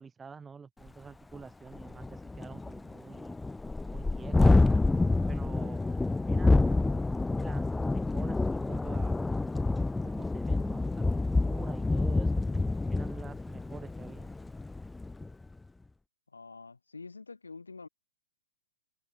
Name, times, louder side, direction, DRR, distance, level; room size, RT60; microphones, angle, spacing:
voice 1, 0.0-3.4 3.9-4.6 5.3-5.8 6.3-7.0 7.3-9.2 10.0-12.4 12.9-14.3, right 5 dB, 10° right, 6.8 m, -47 dB
Thunderstorm, 0.9-1.0 1.3-1.4 1.7-15.3, left 3 dB, 5° left, 0.5 m, -28 dB
voice 2, 16.3-17.9, left 4 dB, 75° left, 3.3 m, -46 dB
figure-of-eight pair, 115°, 0 cm